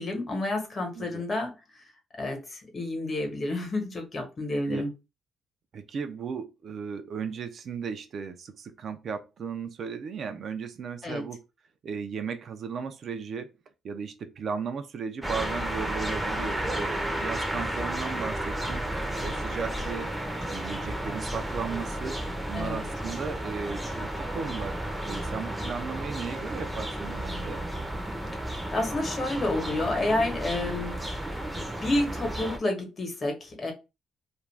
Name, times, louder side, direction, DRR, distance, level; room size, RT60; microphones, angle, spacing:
voice 1, 0.0-1.5 2.2-4.9 11.0-11.2 22.5-22.9 28.5-31.2 31.5-33.7, left 2 dB, 40° left, 1.0 m, -30 dB
voice 2, 5.7-11.4 11.8-13.5 13.8-18.9 19.1-20.1 20.4-22.2 22.5-24.8 25.0-27.6, right 6 dB, 60° right, 0.4 m, -36 dB
sound 1, 15.2-32.6, right 1 dB, 5° right, 0.6 m, -32 dB
2.5 x 2.2 x 3.2 m
cardioid pair, 90°, 0 cm